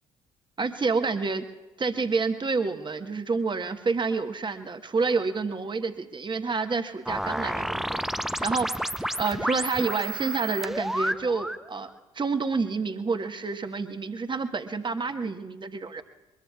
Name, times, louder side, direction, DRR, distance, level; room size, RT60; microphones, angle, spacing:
voice 1, 0.6-1.4 1.8-8.9 9.2-11.9 12.1-16.0, right 4 dB, 30° right, 7 dB, 1.3 m, -28 dB
sound 1, 7.0-11.6, right 1 dB, ahead, 0.7 m, -31 dB
23.0 x 22.0 x 2.4 m, 1.2 s
figure-of-eight pair, 45°, 17 cm